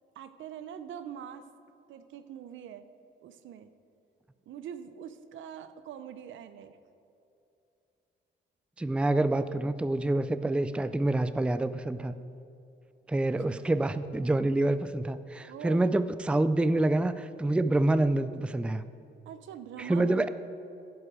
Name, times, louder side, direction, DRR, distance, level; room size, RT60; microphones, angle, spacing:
voice 1, 0.2-1.5 1.9-2.8 3.2-3.7 4.5-6.8 13.2-13.3 15.5-15.9 19.3-20.3, right 9 dB, 75° right, 12 dB, 0.7 m, -43 dB
voice 2, 8.8-12.2 13.1-18.8 19.8-20.3, right 2 dB, 5° right, 13 dB, 0.4 m, -27 dB
11.0 x 11.0 x 5.0 m, 2.8 s
cardioid pair, 90°, 20 cm